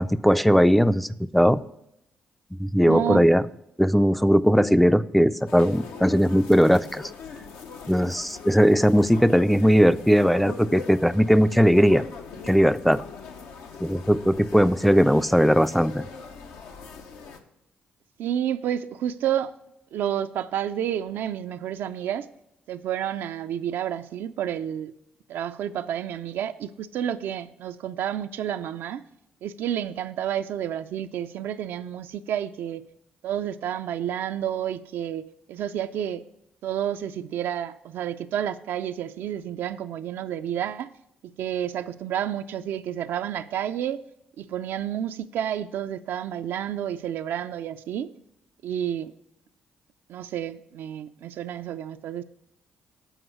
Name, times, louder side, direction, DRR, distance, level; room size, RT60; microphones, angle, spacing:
voice 1, 0.0-1.6 2.6-3.4 3.8-7.1 7.9-12.0 12.5-13.0 13.8-16.1, equal, ahead, 13 dB, 0.3 m, -19 dB
voice 2, 2.8-3.3 18.2-19.6 19.9-22.3 22.7-24.9 25.3-29.0 29.4-32.8 33.2-36.2 36.6-40.9 41.2-44.0 44.4-48.1 48.6-49.1 50.1-52.2, right 10 dB, 70° right, 10 dB, 0.4 m, -30 dB
sound 1, 5.5-17.4, left 5 dB, 80° left, 0.7 m, -41 dB
7.9 x 4.6 x 6.1 m, 0.82 s
hypercardioid pair, 50°, 4 cm